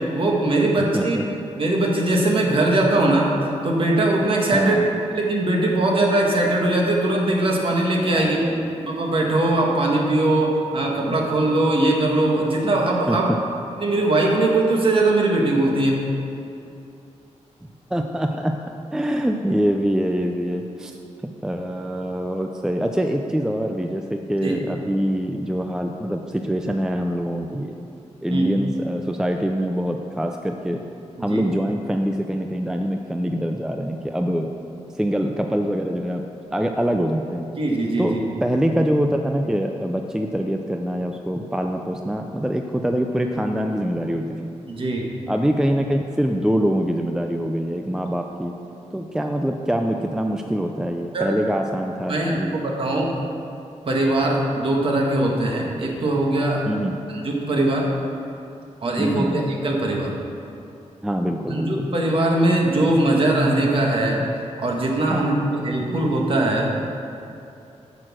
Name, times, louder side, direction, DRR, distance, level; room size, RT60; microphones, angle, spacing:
voice 1, 0.1-1.2 1.6-3.3 3.6-4.8 5.1-8.4 8.8-13.3 13.8-16.0 24.4-24.5 28.3-28.5 31.2-31.4 37.5-38.2 44.7-45.1 51.1-51.3 52.1-53.2 53.9-56.6 57.1-57.9 58.8-60.1 61.5-64.2 64.6-65.3 65.6-66.7, right 2 dB, 45° right, -1 dB, 1.5 m, -21 dB
voice 2, 0.8-1.2 4.5-4.9 8.1-8.7 13.1-13.2 17.6-18.5 18.9-21.0 21.4-27.7 28.2-30.8 31.2-34.5 35.0-36.2 36.5-37.5 38.0-38.1 38.4-44.2 45.3-48.5 48.9-52.6 56.7-57.0 59.0-59.4 61.0-61.9 65.1-65.3, equal, 5° right, 4 dB, 0.4 m, -24 dB
9.0 x 6.4 x 6.0 m, 2.7 s
wide cardioid pair, 145°, 12 cm